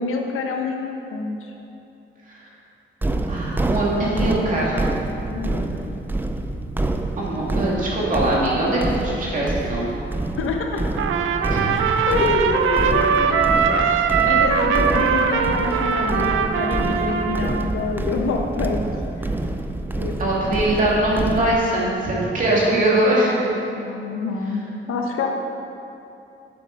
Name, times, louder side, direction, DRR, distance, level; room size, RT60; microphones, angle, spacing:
voice 1, 0.0-1.5 5.3-6.0 10.4-10.8 11.7-18.8 19.2-19.5 20.0-20.5 22.9-25.3, left 4 dB, 90° left, 2 dB, 1.1 m, -27 dB
sound 1, 3.0-21.6, right 2 dB, 10° right, 0.4 m, -27 dB
voice 2, 3.3-4.8 7.2-9.9 11.5-11.6 20.2-23.4, right 1 dB, 40° right, -5 dB, 2.2 m, -21 dB
Trumpet, 10.9-17.7, right 6 dB, 75° right, 0.6 m, -21 dB
8.4 x 7.8 x 5.2 m, 2.8 s
wide cardioid pair, 160°, 21 cm